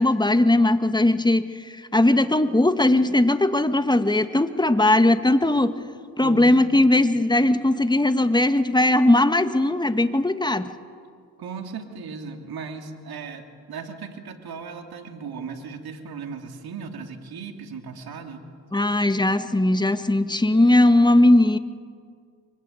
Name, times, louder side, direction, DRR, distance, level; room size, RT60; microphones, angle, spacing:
voice 1, 0.0-5.8 6.2-10.7 18.7-21.6, left 1 dB, 10° left, 10 dB, 1.6 m, -19 dB
voice 2, 6.2-6.6 6.9-7.1 11.4-18.4, right 5 dB, 70° right, 5 dB, 2.8 m, -37 dB
24.5 x 20.5 x 9.1 m, 2.1 s
supercardioid pair, 45°, 38 cm